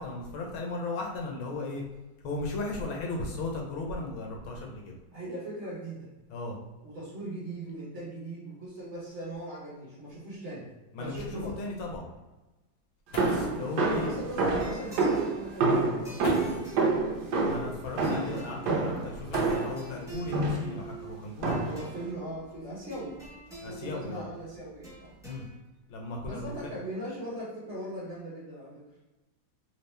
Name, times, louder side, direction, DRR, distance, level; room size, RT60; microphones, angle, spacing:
voice 1, 0.0-1.8 2.2-5.0 6.3-6.6 10.9-12.1 13.2-14.1 17.4-21.6 23.6-24.3 25.2-25.5 25.9-26.7, left 2 dB, 80° left, 0 dB, 1.6 m, -36 dB
voice 2, 5.1-6.1 6.8-10.7 11.0-11.6 13.9-17.3 21.6-23.2 23.6-25.2 26.2-28.8, right 1 dB, 45° right, -7 dB, 1.1 m, -40 dB
sound 1, 12.8-12.9 13.1-13.7 14.9-15.0 16.2-16.8 19.3-20.0 21.4-21.5 22.2-23.7 24.4-24.7 25.1-25.5, equal, 55° left, 0.7 m, -43 dB
sound 2, 13.2-19.8 20.3-20.8 21.4-21.9, right 3 dB, 65° right, 1.1 m, -28 dB
sound 3, 14.5-25.6, right 3 dB, ahead, 0.9 m, -47 dB
3.5 x 2.8 x 3.3 m, 1.1 s
omnidirectional pair, 2.2 m